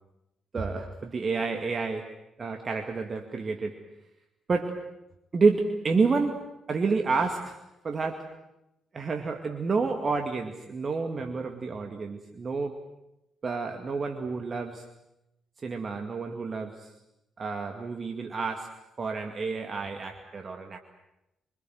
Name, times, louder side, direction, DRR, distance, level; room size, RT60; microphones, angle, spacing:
voice 1, 0.5-2.1 2.4-3.8 4.5-4.8 5.3-8.4 8.9-12.8 13.4-14.9 15.6-16.9 17.4-20.8, right 4 dB, 45° right, 4 dB, 2.2 m, -29 dB
26.0 x 25.0 x 8.0 m, 0.91 s
hypercardioid pair, 45°, 0 cm